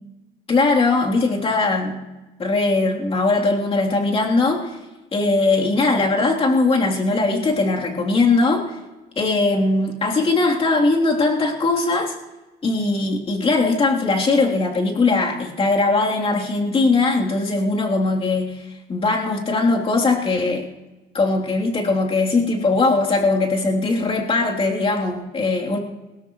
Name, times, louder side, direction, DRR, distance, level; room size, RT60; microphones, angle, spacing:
voice 1, 0.5-2.0 2.4-4.7 5.1-8.7 9.1-12.1 12.6-20.7 21.1-25.8, left 3 dB, 35° left, -1 dB, 3.4 m, -20 dB
21.0 x 16.5 x 3.2 m, 1.1 s
cardioid pair, 110°, 17 cm